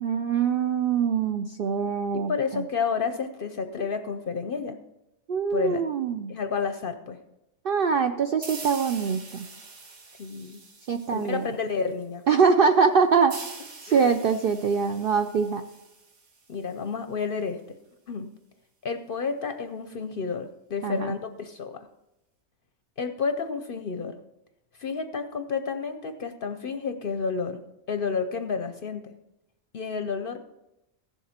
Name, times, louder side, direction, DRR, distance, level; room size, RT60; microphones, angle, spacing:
voice 1, 0.0-2.6 5.3-6.3 7.6-9.5 10.9-11.4 12.3-13.4 13.8-15.6 20.8-21.1, right 6 dB, 65° right, 7 dB, 0.5 m, -23 dB
voice 2, 2.3-4.8 5.5-5.8 6.3-7.2 10.2-10.6 11.1-12.2 13.9-14.1 16.5-17.6 18.1-18.3 18.8-21.9 23.0-24.1 24.8-27.6 27.9-29.1 29.7-30.4, left 5 dB, 55° left, 8 dB, 0.7 m, -30 dB
sound 1, 8.4-11.8 13.3-16.8, right 3 dB, 90° right, 1.8 m, -44 dB
15.5 x 7.2 x 4.3 m, 0.90 s
omnidirectional pair, 1.4 m